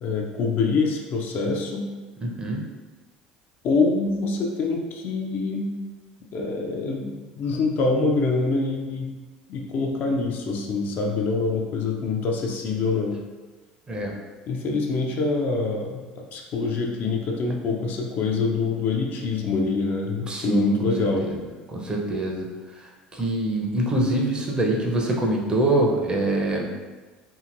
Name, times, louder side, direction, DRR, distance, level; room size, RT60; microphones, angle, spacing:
voice 1, 0.0-1.9 3.6-5.7 6.3-9.2 9.5-13.2 14.5-21.3, left 3 dB, 45° left, 0 dB, 0.4 m, -25 dB
voice 2, 2.2-2.7 13.9-14.1 20.2-20.8 21.2-21.4 21.7-22.5 23.1-26.7, right 1 dB, 20° right, -1 dB, 0.6 m, -24 dB
2.8 x 2.8 x 2.5 m, 1.3 s
figure-of-eight pair, 65°, 4 cm